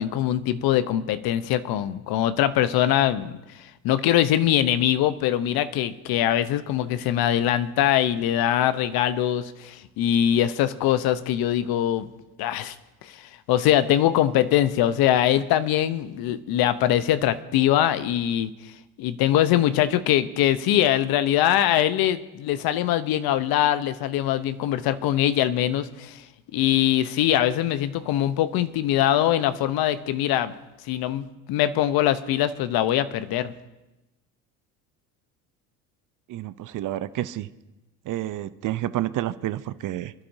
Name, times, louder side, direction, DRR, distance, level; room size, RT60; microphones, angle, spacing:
voice 1, 0.0-12.1 12.4-12.7 13.0-18.5 19.0-26.2 26.5-30.5 30.9-33.5, left 12 dB, 55° left, 13 dB, 1.0 m, -22 dB
voice 2, 36.3-37.5 38.0-40.1, right 14 dB, 45° right, 14 dB, 0.7 m, -29 dB
28.0 x 11.5 x 2.8 m, 1.0 s
hypercardioid pair, 75°, 44 cm